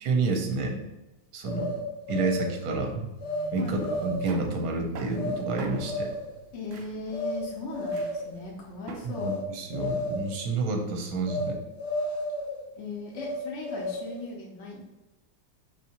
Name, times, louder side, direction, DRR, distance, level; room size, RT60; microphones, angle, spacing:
voice 1, 0.0-0.8 1.3-1.8 2.1-3.1 3.5-6.1 9.0-11.6, right 3 dB, 65° right, 3 dB, 1.1 m, -29 dB
sound 1, 1.4-2.5 3.2-3.5 3.8-4.4 5.1-5.4 5.7-6.3 7.1-7.4 7.7-8.3 9.1-9.4 9.7-10.3 11.3-11.5 11.8-12.6 13.1-14.2, left 1 dB, 85° left, 2.2 m, -32 dB
sound 2, 3.2-9.1, right 5 dB, 90° right, 0.6 m, -43 dB
voice 2, 6.5-9.3 12.8-14.8, left 3 dB, 60° left, -2 dB, 0.8 m, -38 dB
5.2 x 2.7 x 2.8 m, 1.0 s
omnidirectional pair, 1.9 m